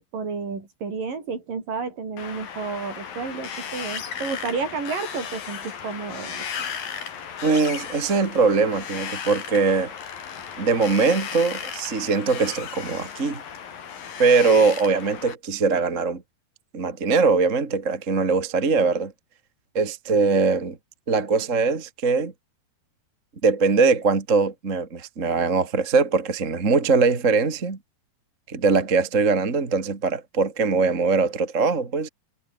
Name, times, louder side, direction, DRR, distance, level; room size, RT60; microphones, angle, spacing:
voice 1, 0.1-6.5, right 5 dB, 55° right, 6.8 m, -31 dB
Wind, 2.2-15.3, left 7 dB, 60° left, 4.7 m, -35 dB
voice 2, 7.4-9.9 10.6-13.4 14.2-16.2 16.7-19.1 19.7-20.8 21.1-22.3 23.4-27.8 28.5-32.1, right 4 dB, 25° right, 2.0 m, -21 dB
omnidirectional pair, 4.8 m